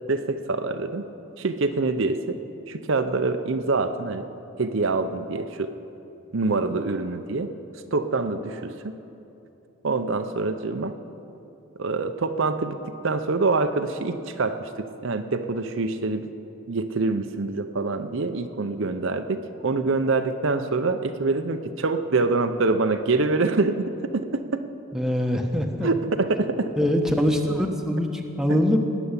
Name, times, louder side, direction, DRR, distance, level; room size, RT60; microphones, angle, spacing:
voice 1, 0.1-1.0 1.4-2.4 2.7-4.3 4.6-5.7 6.3-7.5 7.9-9.0 9.8-10.9 11.8-16.3 16.7-23.8 24.3-24.4 25.8-26.7 28.5-28.6, right 3 dB, 60° right, 8 dB, 0.6 m, -25 dB
voice 2, 24.9-25.9 26.8-28.8, equal, ahead, 2 dB, 1.0 m, -23 dB
18.0 x 7.0 x 9.7 m, 2.8 s
head